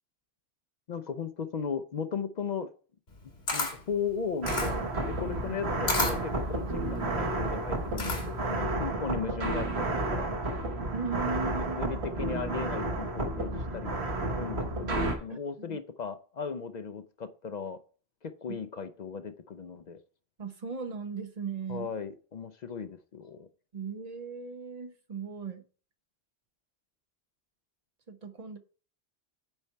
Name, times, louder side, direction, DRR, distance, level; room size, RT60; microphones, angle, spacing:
voice 1, 0.9-2.7 3.2-10.4 11.5-14.0 14.3-17.8 18.2-20.0 21.7-23.5, left 6 dB, 55° left, 0.5 m, -37 dB
Camera, 3.1-8.5, left 3 dB, 85° left, 2.2 m, -33 dB
sound 1, 4.4-15.2, right 2 dB, 85° right, 1.6 m, -31 dB
voice 2, 10.9-12.1 15.3-15.4 15.7-15.8 18.5-18.6 20.4-21.9 23.7-25.6 28.1-28.6, right 5 dB, 40° right, 0.9 m, -37 dB
8.8 x 4.2 x 4.5 m
omnidirectional pair, 1.1 m